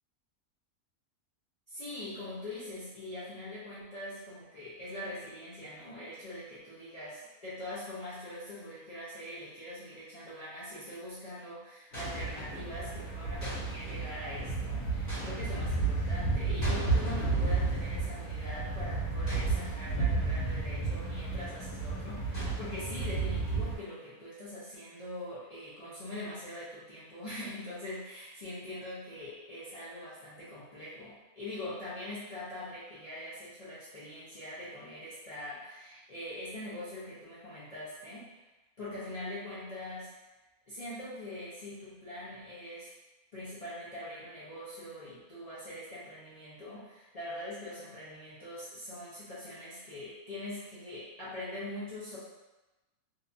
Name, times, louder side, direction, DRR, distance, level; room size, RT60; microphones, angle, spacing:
voice 1, 1.7-38.3 38.8-40.1 40.7-42.9 43.3-52.2, left 1 dB, 55° left, -12 dB, 0.4 m, -43 dB
sound 1, 10.7-11.0 11.9-12.7 13.4-14.2 15.1-15.8 16.6-18.3 19.3-20.5 22.3-23.6, equal, 20° left, 1.0 m, -44 dB
sound 2, 11.9-23.8, right 3 dB, 85° left, 1.3 m, -32 dB
2.9 x 2.2 x 2.5 m, 1.1 s
omnidirectional pair, 1.6 m